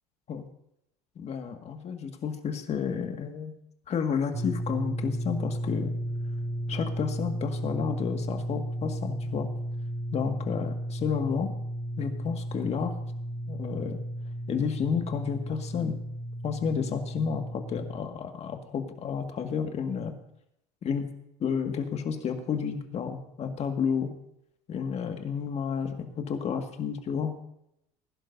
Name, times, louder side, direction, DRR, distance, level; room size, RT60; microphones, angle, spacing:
voice 1, 1.2-3.5 3.9-5.9 6.7-9.5 10.1-11.5 12.0-12.9 13.5-14.0 14.5-16.0 16.4-20.1 20.8-21.1 21.4-24.1 24.7-27.3, left 6 dB, 40° left, 5 dB, 1.9 m, -31 dB
sound 1, 4.3-17.9, equal, 35° right, 4.2 m, -34 dB
21.0 x 11.5 x 2.7 m, 0.79 s
supercardioid pair, 95°, 17 cm